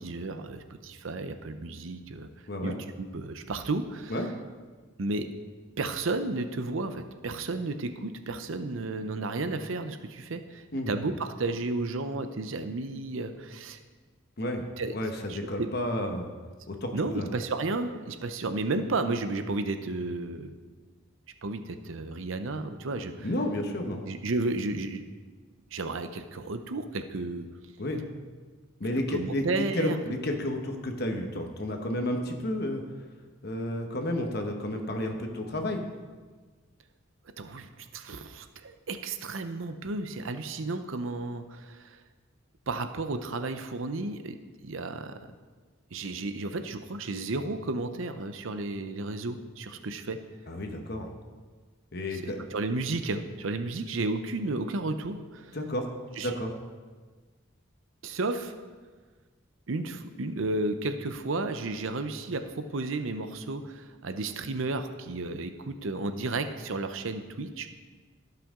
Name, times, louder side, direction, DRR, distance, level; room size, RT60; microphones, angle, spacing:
voice 1, 0.0-2.3 2.6-4.2 5.0-5.3 5.8-13.8 14.8-14.9 15.3-15.7 16.9-20.5 21.4-23.3 24.1-25.0 25.7-27.5 29.1-30.0 37.4-42.0 42.7-44.4 44.6-45.2 45.9-50.2 52.1-55.6 56.2-56.3 58.0-58.5 59.7-67.7, right 2 dB, 75° right, 9 dB, 0.7 m, -33 dB
voice 2, 14.9-16.3 16.7-17.3 23.2-24.1 27.8-28.0 28.8-29.4 29.7-32.8 33.4-35.8 50.5-51.1 51.9-52.4 55.5-55.9 56.2-56.5, left 1 dB, 50° left, 4 dB, 1.0 m, -31 dB
17.0 x 5.8 x 3.7 m, 1.4 s
head